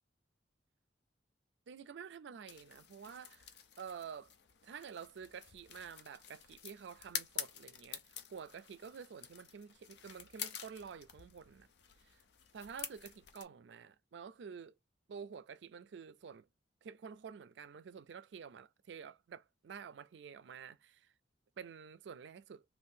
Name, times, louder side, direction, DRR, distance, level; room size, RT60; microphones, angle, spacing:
voice 1, 1.7-4.3 4.6-11.7 12.0-12.2 12.5-14.7 15.1-16.5 16.8-21.1 21.6-22.6, right 6 dB, 70° right, 0.4 m, -50 dB
sound 1, 2.5-13.4, left 9 dB, 65° left, 0.5 m, -48 dB
2.6 x 2.5 x 3.5 m
head